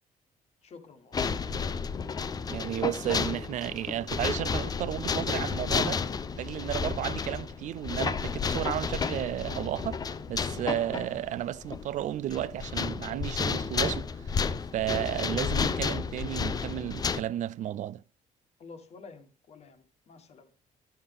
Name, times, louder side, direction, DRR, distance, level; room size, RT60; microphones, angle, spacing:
voice 1, 0.6-1.3 18.6-20.5, left 4 dB, 50° left, 1.3 m, -50 dB
sound 1, 1.1-17.2, left 5 dB, 25° left, 0.5 m, -32 dB
voice 2, 2.5-10.0 10.3-14.4 14.7-18.0, right 12 dB, 60° right, 0.4 m, -33 dB
11.5 x 7.1 x 3.5 m
cardioid pair, 165°, 14 cm